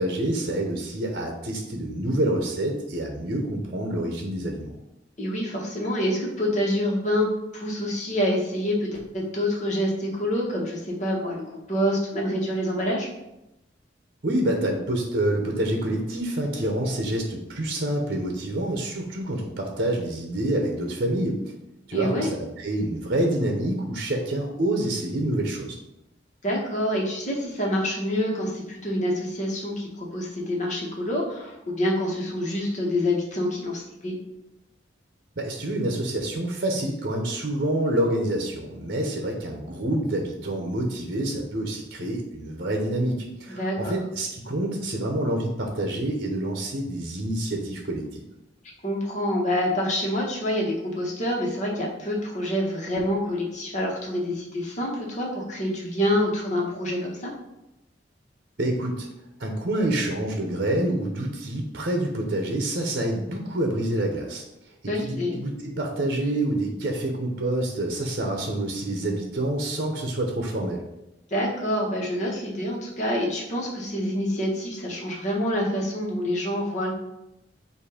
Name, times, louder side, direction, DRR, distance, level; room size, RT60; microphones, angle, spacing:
voice 1, 0.0-4.7 14.2-21.4 21.9-25.8 35.4-48.2 58.6-59.1 59.4-64.4 64.8-70.8, right 1 dB, 55° right, 2 dB, 0.8 m, -27 dB
voice 2, 5.2-7.3 7.5-13.1 21.9-22.3 26.4-34.2 43.6-44.0 48.8-57.3 64.9-65.4 71.3-76.9, left 1 dB, 40° left, -1 dB, 1.4 m, -27 dB
7.4 x 2.7 x 4.9 m, 0.90 s
head